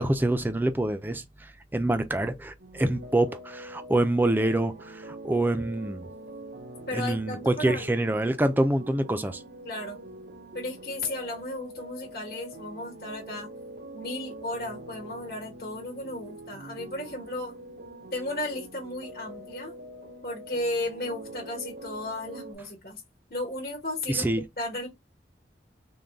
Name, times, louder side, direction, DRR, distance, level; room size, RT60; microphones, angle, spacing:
voice 1, 0.0-6.1 6.9-9.4 24.1-24.4, right 1 dB, 10° right, 0.3 m, -26 dB
sound 1, 2.6-22.5, right 1 dB, 70° right, 0.7 m, -44 dB
voice 2, 6.9-7.9 9.6-10.0 10.5-13.5 13.9-17.6 18.1-19.7 20.2-23.0 23.3-24.3 24.6-24.9, left 1 dB, 55° left, 1.1 m, -34 dB
3.8 x 2.2 x 3.4 m
head